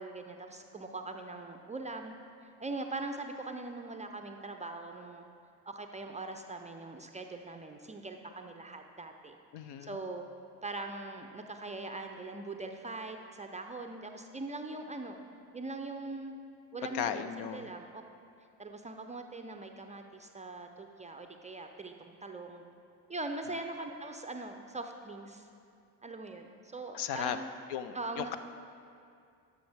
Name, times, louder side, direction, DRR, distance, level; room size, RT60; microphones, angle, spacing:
voice 1, 0.0-2.2 2.4-5.2 5.7-9.4 9.8-10.3 10.6-15.2 15.5-16.4 16.7-18.0 18.6-22.7 23.1-25.5 26.0-27.5 27.9-28.4, right 2 dB, 15° right, 5 dB, 0.4 m, -41 dB
voice 2, 9.5-9.9 16.9-17.7 26.9-27.4 27.7-28.4, left 9 dB, 55° left, 11 dB, 0.6 m, -36 dB
12.5 x 6.3 x 3.4 m, 2.4 s
hypercardioid pair, 60°, 50 cm